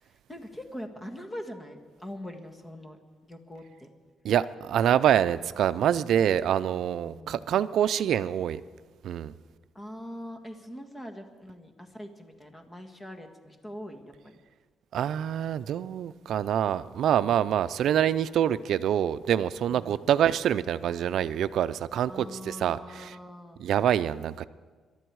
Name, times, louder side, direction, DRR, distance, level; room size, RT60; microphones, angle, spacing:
voice 1, 0.0-3.0 3.3-3.9 7.0-7.6 9.7-14.3 19.7-20.1 22.1-23.7, equal, 15° left, 5 dB, 1.7 m, -43 dB
voice 2, 4.2-8.6 9.0-9.3 14.9-23.2 23.6-24.5, right 10 dB, 70° right, 15 dB, 0.5 m, -26 dB
22.5 x 12.0 x 4.8 m, 1.5 s
cardioid pair, 110°, 0 cm